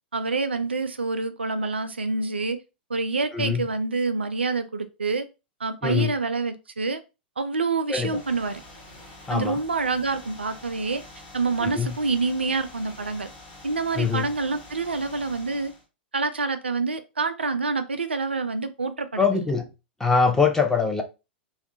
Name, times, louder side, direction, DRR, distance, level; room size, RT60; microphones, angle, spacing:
voice 1, 0.1-2.6 2.9-5.3 5.6-7.0 7.4-8.6 9.3-11.0 11.3-13.3 13.6-15.7 16.1-19.5, right 3 dB, 80° right, 0.3 m, -27 dB
voice 2, 3.3-3.7 5.8-6.1 7.9-8.2 9.3-9.6 11.6-11.9 14.0-14.3 19.2-19.7 20.0-21.0, left 5 dB, 10° left, 0.4 m, -23 dB
sound 1, 7.9-15.9, left 2 dB, 35° left, 1.1 m, -46 dB
2.2 x 2.0 x 2.7 m
figure-of-eight pair, 100°, 6 cm